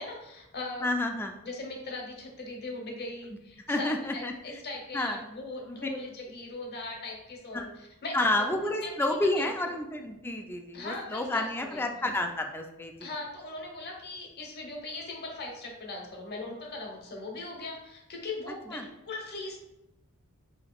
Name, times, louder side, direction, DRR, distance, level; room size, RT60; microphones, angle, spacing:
voice 1, 0.0-0.9 1.4-8.3 8.8-9.5 10.7-11.9 13.0-19.6, left 2 dB, 50° left, 0 dB, 0.9 m, -39 dB
voice 2, 0.8-1.3 3.7-4.3 4.9-5.2 5.7-5.9 7.5-7.7 8.1-13.1 18.7-18.9, left 1 dB, 10° left, 4 dB, 0.3 m, -30 dB
5.1 x 2.8 x 2.3 m, 0.93 s
head